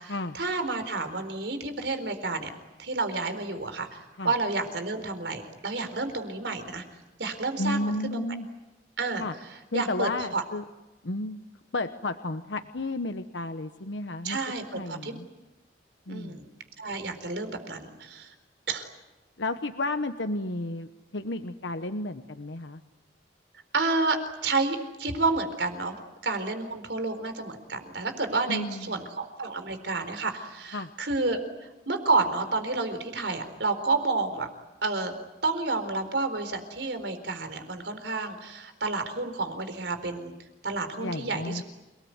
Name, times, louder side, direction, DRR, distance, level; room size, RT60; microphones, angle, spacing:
voice 1, 0.0-2.5 2.8-6.8 7.2-8.2 9.0-9.2 9.7-10.4 14.2-14.6 14.9-15.2 16.1-16.4 16.8-18.3 18.7-18.9 23.7-24.2 24.4-31.4 31.9-34.5 34.8-35.1 35.4-40.3 40.6-41.6, right 3 dB, 75° right, 9 dB, 4.2 m, -30 dB
voice 2, 7.6-8.5 9.2-9.3 9.7-10.7 11.0-11.4 11.7-14.4 14.7-15.3 16.1-16.4 19.4-22.8 28.5-29.0 30.7-30.9 41.0-41.6, left 2 dB, 85° left, 8 dB, 1.2 m, -32 dB
29.0 x 19.5 x 9.5 m, 1.1 s
head